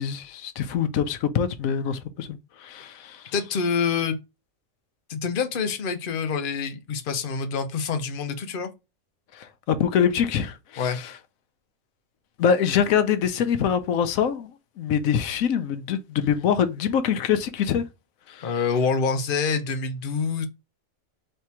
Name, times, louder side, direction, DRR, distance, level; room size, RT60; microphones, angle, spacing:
voice 1, 0.0-3.2 9.3-11.1 12.4-14.5 14.8-17.8 18.3-18.5, left 8 dB, 85° left, 1.1 m, -24 dB
voice 2, 3.3-4.2 5.1-8.7 10.8-11.0 18.4-20.5, left 5 dB, 45° left, 0.8 m, -26 dB
3.3 x 2.8 x 4.5 m
omnidirectional pair, 1.4 m